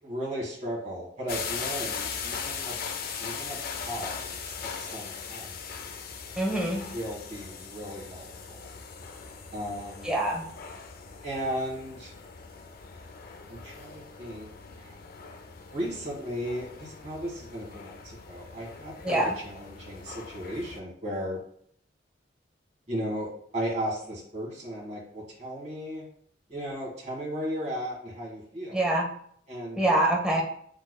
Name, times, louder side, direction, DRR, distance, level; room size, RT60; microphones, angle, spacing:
voice 1, 0.0-2.8 3.2-5.8 6.9-8.7 9.5-10.1 11.2-12.1 13.5-14.5 14.8-14.9 15.7-21.4 22.9-26.0 26.5-28.8 29.5-29.8, equal, 40° right, -4 dB, 1.6 m, -36 dB
sound 1, 1.3-20.8, left 6 dB, 50° left, 0.4 m, -40 dB
voice 2, 6.4-6.9 10.0-10.4 19.0-19.3 28.7-29.1 29.8-30.4, right 1 dB, 5° right, -1 dB, 0.8 m, -25 dB
6.4 x 3.0 x 2.2 m, 0.63 s
head